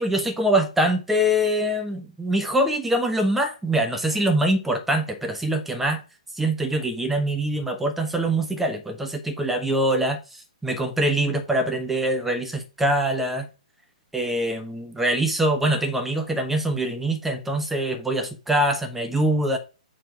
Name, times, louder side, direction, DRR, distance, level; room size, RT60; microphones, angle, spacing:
voice 1, 0.0-6.0 6.3-13.5 14.1-19.6, right 1 dB, 5° right, 1.4 m, -24 dB
7.4 x 4.5 x 4.8 m
figure-of-eight pair, 125°, 4 cm